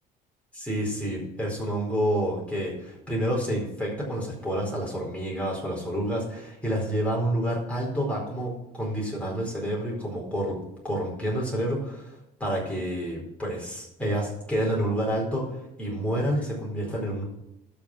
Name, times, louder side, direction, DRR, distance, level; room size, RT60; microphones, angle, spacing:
voice 1, 0.5-10.6 10.8-12.1 12.4-17.2, equal, 10° left, -3 dB, 4.6 m, -29 dB
13.0 x 5.5 x 6.2 m, 0.85 s
cardioid pair, 110°, 17 cm